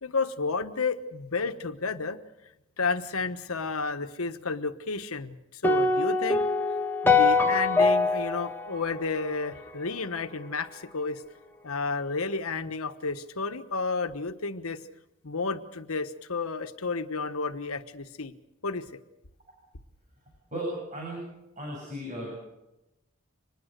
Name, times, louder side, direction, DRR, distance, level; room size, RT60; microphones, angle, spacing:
voice 1, 0.0-2.2 2.8-6.5 7.0-11.2 11.6-14.8 15.2-18.3 18.6-18.9, left 4 dB, 90° left, 10 dB, 1.3 m, -31 dB
sound 1, 5.6-9.9, left 3 dB, 10° left, 1.5 m, -24 dB
voice 2, 20.5-21.2 21.6-22.4, right 1 dB, 35° right, -2 dB, 7.9 m, -35 dB
25.0 x 20.0 x 6.7 m, 0.93 s
head